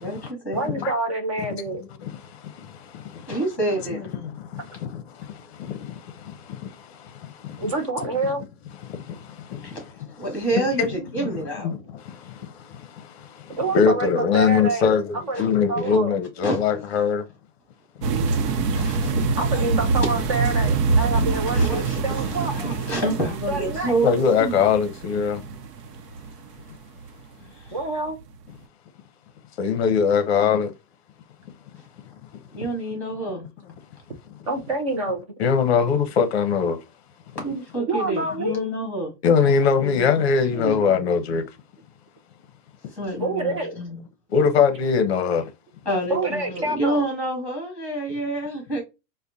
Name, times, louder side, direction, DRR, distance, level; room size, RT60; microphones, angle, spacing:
voice 1, 0.0-0.7 3.3-4.1 9.6-9.8 10.2-11.7 15.4-15.5 15.8-15.9 16.4-16.6 18.4-19.2 19.5-19.9 21.5-24.5 27.4-27.8 32.5-33.5 37.4-39.1 39.4-40.1 40.5-40.9 42.9-44.0 45.9-48.8, right 1 dB, 5° left, 1.9 m, -28 dB
voice 2, 0.5-1.8 7.6-8.4 13.6-15.0 15.3-16.1 19.4-22.6 23.5-23.9 27.7-28.2 34.5-35.2 37.8-38.7 43.2-43.8 46.1-47.1, right 2 dB, 20° right, 0.4 m, -27 dB
voice 3, 2.0-3.3 4.2-7.7 8.9-9.8 10.8-11.3 11.6-17.2 24.0-25.4 29.6-30.7 35.4-36.8 39.2-41.4 44.3-45.5, left 6 dB, 40° left, 0.7 m, -23 dB
sound 1, 18.0-27.1 27.6-27.8 28.1-28.2, right 4 dB, 75° right, 0.8 m, -25 dB
4.7 x 2.2 x 2.7 m
supercardioid pair, 160°, 49 cm